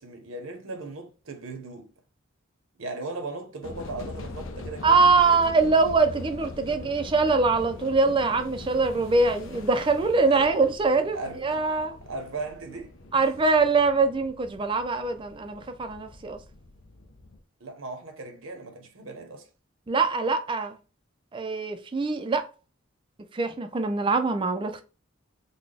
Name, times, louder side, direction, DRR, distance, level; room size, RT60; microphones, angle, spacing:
voice 1, 0.0-1.9 2.8-5.6 10.3-10.5 11.1-11.4 12.1-13.3 17.6-19.5, right 3 dB, 75° right, 0.9 m, -38 dB
sound 1, 3.6-17.4, left 2 dB, 65° left, 0.6 m, -42 dB
voice 2, 4.8-12.0 13.1-16.4 19.9-20.8 21.3-22.4 23.3-24.8, right 4 dB, 25° right, 0.4 m, -23 dB
4.0 x 2.2 x 3.3 m
head